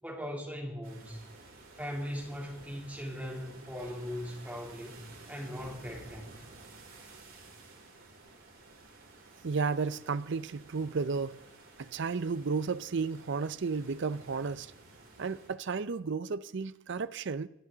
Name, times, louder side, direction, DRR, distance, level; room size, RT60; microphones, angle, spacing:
voice 1, 0.0-1.2 1.8-5.0 5.3-6.4, equal, 5° right, 3.1 m, -39 dB
sound 1, 0.8-15.5, right 2 dB, 80° right, 5.5 m, -53 dB
voice 2, 9.4-11.4 11.8-14.7 15.2-17.5, right 4 dB, 55° right, 0.5 m, -33 dB
26.5 x 11.0 x 3.9 m
head